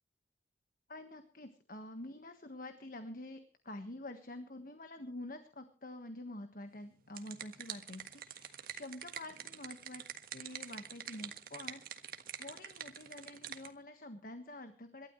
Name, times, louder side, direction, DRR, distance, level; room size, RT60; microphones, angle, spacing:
voice 1, 0.9-10.0 10.3-12.1 12.4-15.1, left 1 dB, 45° left, 8 dB, 1.4 m, -47 dB
sound 1, 6.8-13.7, right 9 dB, 50° right, 1.6 m, -46 dB
27.5 x 13.0 x 3.2 m, 0.38 s
head